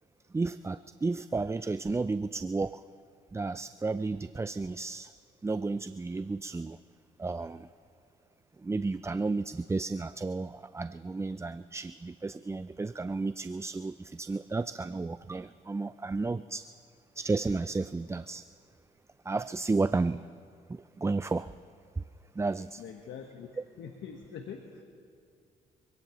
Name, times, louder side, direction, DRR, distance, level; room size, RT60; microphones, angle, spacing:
voice 1, 0.3-2.8 3.3-5.1 5.4-6.8 7.2-7.7 8.6-16.7 17.2-18.4 19.3-20.3 20.7-21.5 22.0-22.1 22.4-22.8, right 3 dB, 15° right, 14 dB, 0.4 m, -32 dB
voice 2, 22.8-23.5 23.8-24.8, left 7 dB, 70° left, 3 dB, 1.3 m, -43 dB
25.5 x 17.5 x 3.1 m, 2.4 s
supercardioid pair, 55°, 20 cm